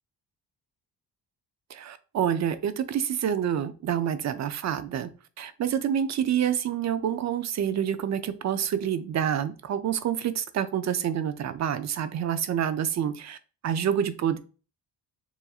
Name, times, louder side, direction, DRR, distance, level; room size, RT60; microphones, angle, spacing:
voice 1, 1.7-5.1 5.4-13.4 13.6-14.4, right 9 dB, 45° right, 11 dB, 0.4 m, -27 dB
6.9 x 2.5 x 2.3 m, 0.36 s
cardioid pair, 160°, 40 cm